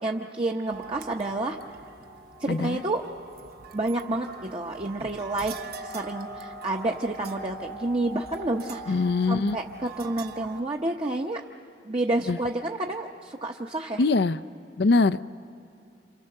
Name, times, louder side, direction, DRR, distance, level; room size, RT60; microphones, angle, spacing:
voice 1, 0.0-1.6 2.4-3.0 3.7-11.4 11.8-14.0, right 2 dB, 30° right, 1 dB, 1.0 m, -29 dB
sound 1, 0.7-10.6, right 4 dB, 60° right, 1.0 m, -42 dB
voice 2, 2.5-2.8 8.9-9.6 12.3-12.4 14.0-14.4 14.8-15.2, left 3 dB, 65° left, 15 dB, 0.5 m, -22 dB
28.5 x 27.5 x 6.7 m, 2.5 s
head